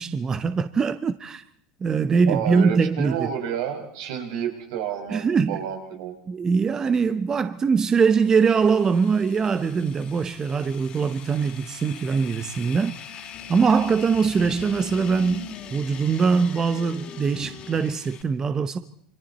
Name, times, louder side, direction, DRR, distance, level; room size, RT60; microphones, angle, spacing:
voice 1, 0.0-1.4 1.8-3.3 5.1-5.6 6.3-15.5 15.7-18.8, right 5 dB, 20° right, 0.8 m, -22 dB
voice 2, 2.3-6.1, right 8 dB, 80° right, 5.5 m, -30 dB
sound 1, 8.1-18.2, left 7 dB, 40° left, 2.8 m, -41 dB
28.0 x 24.5 x 4.2 m
supercardioid pair, 135°, 3 cm